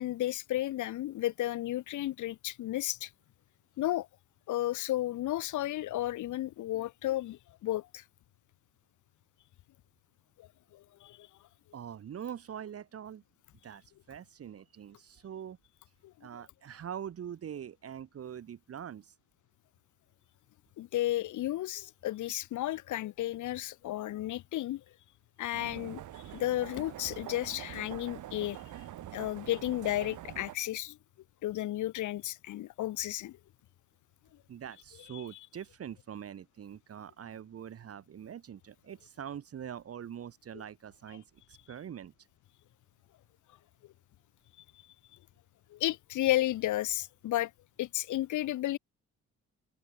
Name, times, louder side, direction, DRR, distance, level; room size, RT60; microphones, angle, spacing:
voice 1, 0.0-3.1 3.8-4.1 4.5-8.0 10.4-11.3 16.0-16.1 20.8-24.8 25.4-26.0 26.3-28.6 29.1-31.0 31.4-33.4 45.7-47.5 47.8-48.8, left 14 dB, 75° left, 1.2 m, -33 dB
voice 2, 11.7-13.2 13.6-15.6 16.2-19.1 34.5-42.1, right 9 dB, 50° right, 2.0 m, -43 dB
sound 1, 25.5-30.5, right 13 dB, 75° right, 4.2 m, -45 dB
open air
cardioid pair, 105°, 30 cm